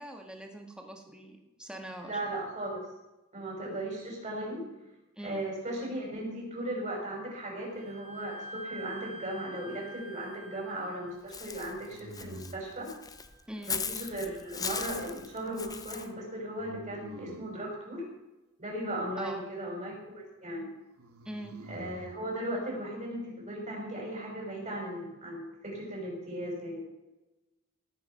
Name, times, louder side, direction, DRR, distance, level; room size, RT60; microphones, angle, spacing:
voice 1, 0.0-2.2 5.2-5.5 13.5-13.8 19.2-19.4 21.3-21.6, right 1 dB, 5° right, 2 dB, 1.9 m, -42 dB
voice 2, 2.0-2.8 3.3-4.7 5.2-12.9 13.7-18.0 18.6-20.7 21.7-26.8, right 1 dB, 35° right, -2 dB, 6.4 m, -37 dB
Wind instrument woodwind instrument, 7.8-15.2, right 1 dB, 50° right, 3.1 m, -49 dB
sound 1, 9.1-9.8 11.8-12.8 16.6-17.6 21.0-22.2, right 1 dB, 85° right, 1.5 m, -48 dB
Walk footsteps / Bird, 11.3-16.1, left 6 dB, 15° left, 0.6 m, -38 dB
17.5 x 8.5 x 5.8 m, 1.0 s
head